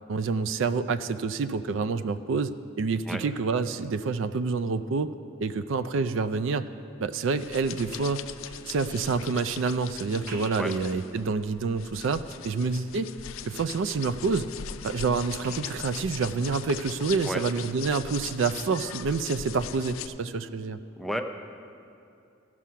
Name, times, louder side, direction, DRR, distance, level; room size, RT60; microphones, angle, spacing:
voice 1, 0.1-2.5 2.8-5.1 5.4-6.7 7.0-8.2 8.7-13.1 13.4-14.5 14.8-20.8, right 4 dB, 65° right, 12 dB, 0.4 m, -28 dB
voice 2, 3.1-3.2 10.6-10.7 17.2-17.4 21.0-21.2, equal, ahead, 5 dB, 0.5 m, -31 dB
sound 1, 7.4-20.1, left 9 dB, 75° left, 0.4 m, -40 dB
sound 2, 7.4-9.2 10.1-10.8 11.3-11.9 12.4-12.9 13.2-13.9 15.4-16.0 17.7-17.9, right 2 dB, 45° right, 1.1 m, -49 dB
15.5 x 6.2 x 5.7 m, 2.6 s
head